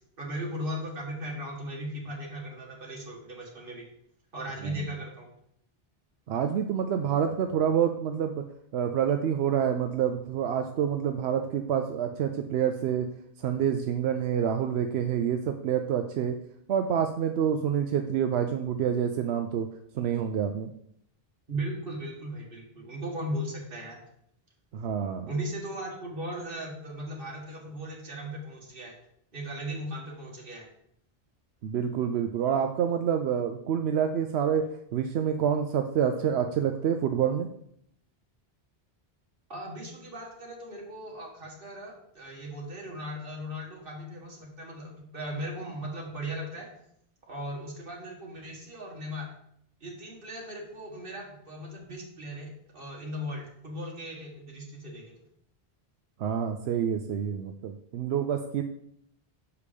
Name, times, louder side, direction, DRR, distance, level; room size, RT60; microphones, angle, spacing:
voice 1, 0.2-3.9 4.3-5.3 21.5-24.0 25.3-29.0 29.3-30.7 39.5-46.7 47.3-49.3 49.8-55.1, equal, 60° right, -1 dB, 2.0 m, -37 dB
voice 2, 6.3-8.4 8.7-13.1 13.4-16.4 16.7-19.7 19.9-20.7 24.7-25.3 31.6-34.7 34.9-37.5 56.2-58.6, right 8 dB, 90° right, 6 dB, 0.8 m, -27 dB
6.9 x 4.9 x 5.1 m, 0.71 s
omnidirectional pair, 1.0 m